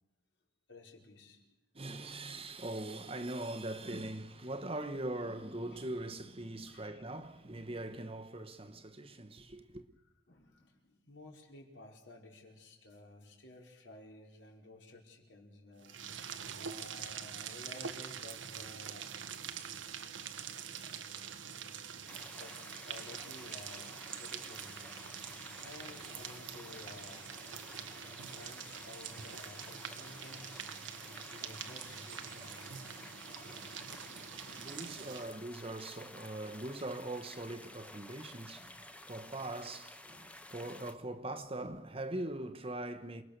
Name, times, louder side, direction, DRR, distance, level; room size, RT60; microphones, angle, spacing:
voice 1, 0.7-1.5 5.7-5.8 6.7-7.0 10.3-16.0 16.6-19.1 22.3-24.8 25.6-27.3 27.7-30.6 31.3-32.8 33.3-33.6 34.1-34.2, left 2 dB, 70° left, 4.9 m, -54 dB
voice 2, 1.7-9.8 33.4-34.0 34.3-43.2, right 1 dB, 30° right, 1.2 m, -42 dB
sound 1, 15.8-35.4, right 7 dB, 80° right, 1.5 m, -45 dB
sound 2, 22.1-40.9, left 1 dB, 5° left, 1.0 m, -52 dB
28.5 x 20.5 x 6.7 m
head